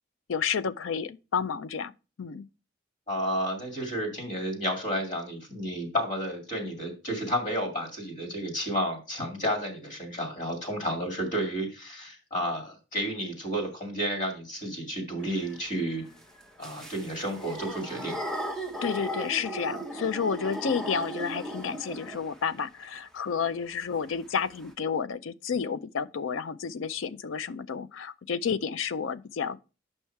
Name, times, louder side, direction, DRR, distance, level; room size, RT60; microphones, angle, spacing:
voice 1, 0.3-1.9 2.2-2.5 18.8-29.6, left 6 dB, 80° left, 0.5 m, -31 dB
voice 2, 3.1-16.0 16.6-18.2, equal, 40° left, 2.4 m, -31 dB
sound 1, 15.2-22.5 24.1-24.2 24.4-24.7, equal, 5° left, 0.7 m, -37 dB
7.1 x 5.5 x 4.5 m
head